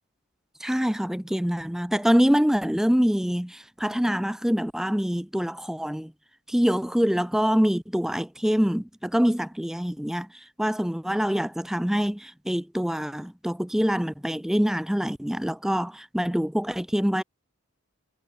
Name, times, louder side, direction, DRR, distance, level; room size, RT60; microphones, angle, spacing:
voice 1, 0.6-6.1 6.5-10.3 10.6-17.2, equal, ahead, 0.4 m, -25 dB
head